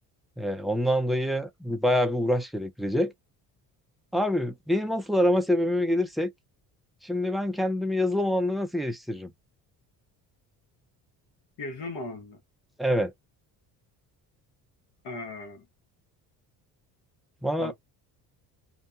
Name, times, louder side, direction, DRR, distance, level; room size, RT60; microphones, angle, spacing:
voice 1, 0.4-3.1 4.1-6.3 7.0-9.3 12.8-13.1 17.4-17.7, equal, ahead, 0.4 m, -26 dB
voice 2, 11.6-12.4 15.0-15.6 17.6-17.7, left 2 dB, 60° left, 1.2 m, -37 dB
2.7 x 2.2 x 2.5 m
hypercardioid pair, 65°, 46 cm